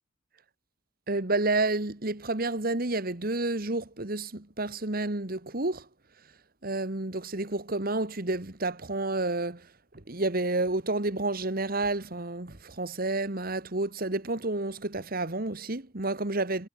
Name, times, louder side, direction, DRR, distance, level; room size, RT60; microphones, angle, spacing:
voice 1, 1.1-5.9 6.6-16.7, right 2 dB, 50° right, 2.0 m, -30 dB
head